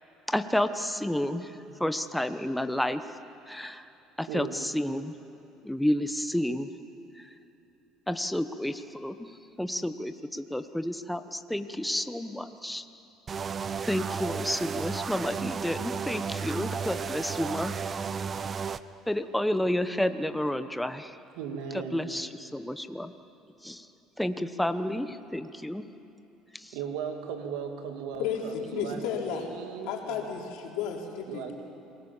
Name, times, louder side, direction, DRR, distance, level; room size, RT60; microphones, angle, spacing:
voice 1, 0.3-1.5 1.8-3.0 3.5-3.8 4.2-5.1 5.6-6.7 8.1-9.2 9.6-12.8 13.8-17.8 19.1-21.2 21.9-23.1 23.6-23.8 24.2-25.8 26.5-26.7, left 1 dB, 5° left, 1.1 m, -30 dB
voice 2, 4.3-4.6 9.7-9.8 21.4-22.1 26.7-29.0 29.3-30.2 31.3-31.5, right 7 dB, 80° right, 2.6 m, -37 dB
sound 1, 13.3-18.8, right 6 dB, 35° right, 0.8 m, -33 dB
voice 3, 28.2-29.5 29.9-31.5, left 7 dB, 75° left, 4.0 m, -33 dB
28.5 x 20.5 x 7.4 m
supercardioid pair, 85°, 0 cm